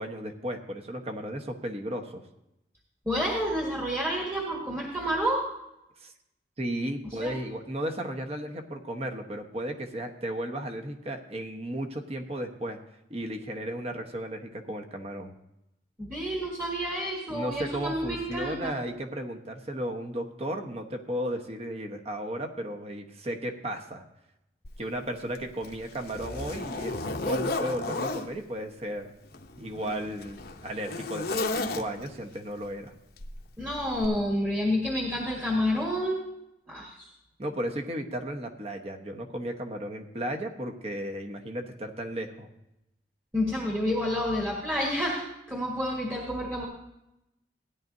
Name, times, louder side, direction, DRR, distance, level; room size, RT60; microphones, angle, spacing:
voice 1, 0.0-2.2 6.0-6.1 6.6-12.8 13.1-15.3 17.3-24.0 24.8-29.1 29.6-32.9 37.4-42.5, right 1 dB, 35° right, 4 dB, 1.1 m, -34 dB
voice 2, 3.0-5.5 7.2-7.3 16.0-18.7 33.6-36.2 36.7-37.1 43.3-46.7, equal, 15° right, -2 dB, 1.5 m, -29 dB
Zipper (clothing), 24.6-24.8 25.3-28.3 29.2-32.2 33.2-33.4 34.0-34.1, left 2 dB, 60° left, 0.9 m, -33 dB
16.5 x 10.5 x 2.7 m, 0.87 s
head